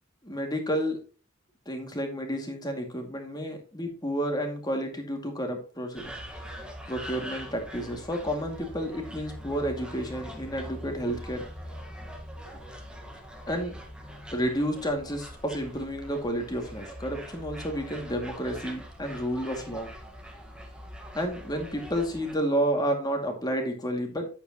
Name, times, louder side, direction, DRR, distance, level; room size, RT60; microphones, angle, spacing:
voice 1, 0.2-1.0 1.7-11.4 13.5-13.8 14.3-19.9 21.1-24.3, equal, 20° left, 3 dB, 2.3 m, -31 dB
sound 1, 6.0-22.3, equal, 5° right, 1.5 m, -43 dB
10.5 x 8.5 x 3.0 m, 0.36 s
head